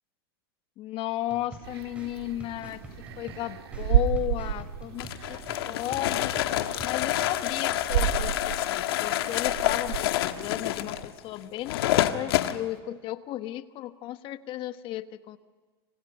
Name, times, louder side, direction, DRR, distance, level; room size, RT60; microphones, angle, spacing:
voice 1, 0.8-2.8 3.2-5.4 5.7-6.3 6.8-15.4, left 14 dB, 45° left, 12 dB, 1.2 m, -34 dB
sound 1, 1.3-7.4, right 1 dB, 10° right, 7.6 m, -47 dB
sound 2, 1.6-11.0, right 10 dB, 85° right, 2.2 m, -32 dB
sound 3, 5.0-12.6, left 14 dB, 75° left, 1.6 m, -28 dB
29.5 x 26.0 x 5.6 m, 1.4 s
supercardioid pair, 120°, 13 cm